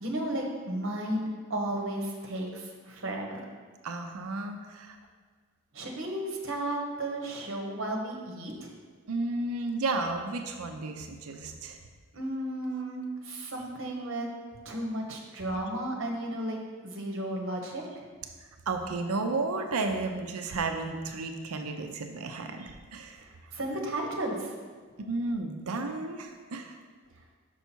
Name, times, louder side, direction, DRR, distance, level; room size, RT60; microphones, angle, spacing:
voice 1, 0.0-3.4 5.7-8.7 12.1-14.3 14.6-18.0 23.2-24.5, right 1 dB, 60° right, 1 dB, 1.2 m, -34 dB
voice 2, 3.8-5.0 9.1-11.8 18.7-23.2 25.0-26.8, right 3 dB, 85° right, 5 dB, 0.6 m, -33 dB
6.2 x 5.6 x 4.5 m, 1.5 s
head